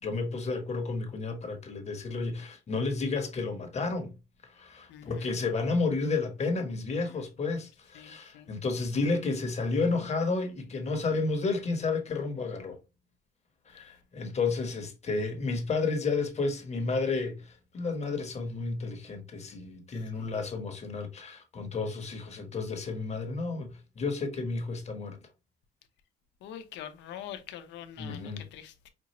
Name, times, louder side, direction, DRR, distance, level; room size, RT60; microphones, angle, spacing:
voice 1, 0.0-4.1 4.4-12.8 13.7-25.2 28.0-28.4, left 3 dB, 40° left, 1.3 m, -31 dB
voice 2, 4.9-5.3 7.1-7.2 8.0-8.5 20.1-20.3 26.4-28.9, left 10 dB, 90° left, 0.8 m, -44 dB
5.4 x 2.5 x 3.0 m
cardioid pair, 115°, 18 cm